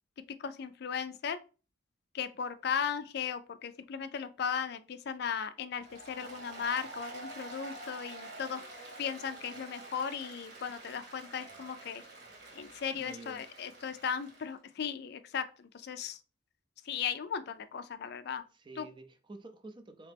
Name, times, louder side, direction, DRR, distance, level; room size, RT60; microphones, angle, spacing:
voice 1, 0.4-1.4 2.1-8.6 9.0-12.0 12.5-16.2 16.8-18.4 18.8-18.9, left 7 dB, 55° left, 0.4 m, -36 dB
Applause, 5.8-14.5, right 2 dB, 60° right, 1.3 m, -48 dB
voice 2, 12.9-13.6 18.5-20.1, right 2 dB, 25° right, 0.5 m, -49 dB
4.1 x 2.9 x 3.3 m
head